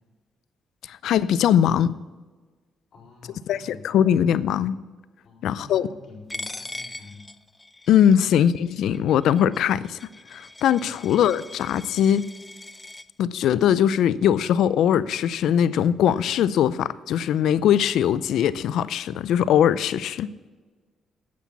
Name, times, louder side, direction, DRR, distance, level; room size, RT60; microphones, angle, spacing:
voice 1, 0.9-1.9 3.5-4.8 5.4-5.9 7.9-10.0 10.3-12.3 13.2-20.3, left 9 dB, 80° left, 17 dB, 0.4 m, -21 dB
voice 2, 2.9-3.9 5.2-7.2 10.9-11.2, left 3 dB, 55° left, -4 dB, 4.0 m, -47 dB
Coin (dropping), 6.3-13.0, left 2 dB, 20° left, 0.5 m, -41 dB
8.5 x 8.4 x 7.0 m, 1.3 s
cardioid pair, 90°, 0 cm